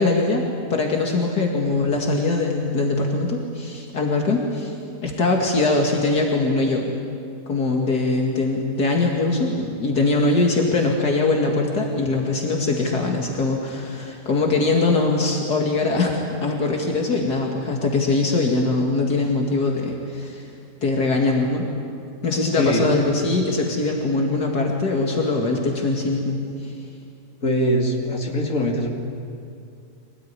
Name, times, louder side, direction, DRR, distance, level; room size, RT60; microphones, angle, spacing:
voice 1, 0.0-4.7 5.0-6.9 7.5-20.4 20.8-21.7 22.2-26.4 26.6-26.7, left 3 dB, 75° left, 0 dB, 2.8 m, -22 dB
voice 2, 22.6-22.9 27.4-28.9, equal, 55° left, 0 dB, 3.1 m, -22 dB
25.0 x 18.5 x 9.9 m, 2.4 s
omnidirectional pair, 1.7 m